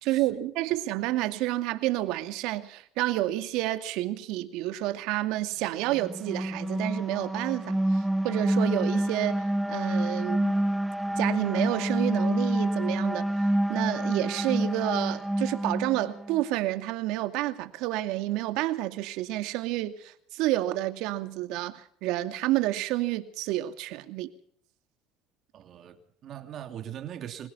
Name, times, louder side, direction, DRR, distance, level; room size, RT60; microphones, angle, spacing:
voice 1, 0.0-10.6 11.2-13.3 13.7-24.3, right 16 dB, 70° right, 2.3 m, -29 dB
sound 1, 5.9-16.4, right 1 dB, 5° right, 0.7 m, -28 dB
voice 2, 25.5-27.5, right 10 dB, 45° right, 3.0 m, -41 dB
26.0 x 17.0 x 5.8 m
cardioid pair, 120°, 0 cm